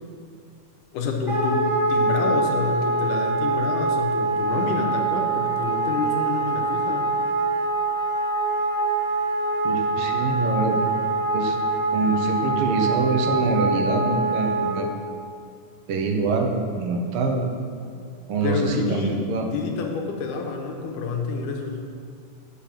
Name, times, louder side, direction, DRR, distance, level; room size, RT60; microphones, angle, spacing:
voice 1, 0.9-7.1 18.4-21.9, left 4 dB, 90° left, 2 dB, 2.5 m, -28 dB
Wind instrument woodwind instrument, 1.3-14.7, right 3 dB, 20° left, 2.6 m, -24 dB
voice 2, 9.6-10.8 11.3-11.6 11.9-14.9 15.9-17.5 18.3-19.5, right 3 dB, 65° right, 3 dB, 1.4 m, -25 dB
7.0 x 6.4 x 7.4 m, 2.5 s
omnidirectional pair, 3.6 m